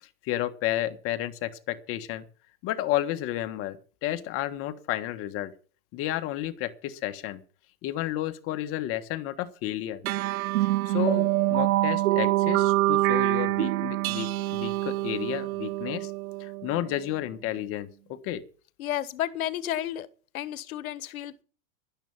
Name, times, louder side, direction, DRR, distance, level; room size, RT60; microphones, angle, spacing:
voice 1, 0.0-2.2 2.6-5.5 5.9-7.4 7.8-10.0 10.6-16.1 16.4-18.4, left 13 dB, 30° left, 9 dB, 1.5 m, -32 dB
sound 1, 10.0-16.9, right 17 dB, 75° right, 0.6 m, -25 dB
voice 2, 18.8-20.1 20.3-21.4, left 12 dB, 75° left, 14 dB, 1.5 m, -32 dB
12.0 x 10.5 x 7.4 m, 0.39 s
supercardioid pair, 155°, 43 cm